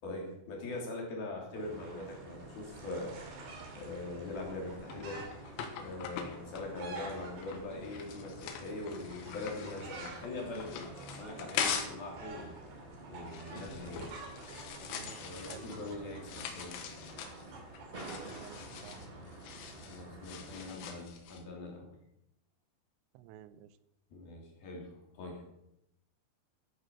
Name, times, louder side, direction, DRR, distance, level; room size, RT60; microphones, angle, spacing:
voice 1, 0.0-3.2 3.7-5.2 5.7-12.5 13.1-14.0 15.2-16.8 19.8-21.9 24.1-25.6, left 2 dB, 55° left, -1 dB, 4.9 m, -42 dB
sound 1, 1.6-20.7, right 2 dB, 40° right, 0.8 m, -50 dB
sound 2, 1.6-19.2, right 4 dB, 65° right, 4.4 m, -52 dB
sound 3, 4.3-12.1 12.4-21.4, left 7 dB, 85° left, 3.7 m, -42 dB
voice 2, 13.5-14.1 14.9-15.7 18.0-19.0 23.1-23.7, right 11 dB, 90° right, 14 dB, 3.0 m, -52 dB
14.0 x 9.5 x 6.1 m, 0.82 s
omnidirectional pair, 5.1 m